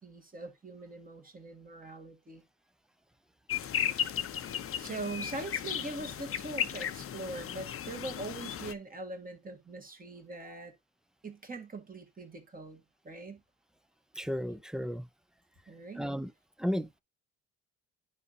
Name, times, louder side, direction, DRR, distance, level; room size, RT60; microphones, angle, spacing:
voice 1, 0.0-2.4 3.7-4.1 4.8-10.7 11.2-13.4 15.7-16.1, right 2 dB, 25° right, 1.9 m, -42 dB
sound 1, 3.5-8.7, left 9 dB, 45° left, 0.6 m, -35 dB
voice 2, 14.2-15.1 16.0-16.3 16.6-16.9, equal, ahead, 0.4 m, -33 dB
9.7 x 5.2 x 2.8 m
cardioid pair, 90°, 32 cm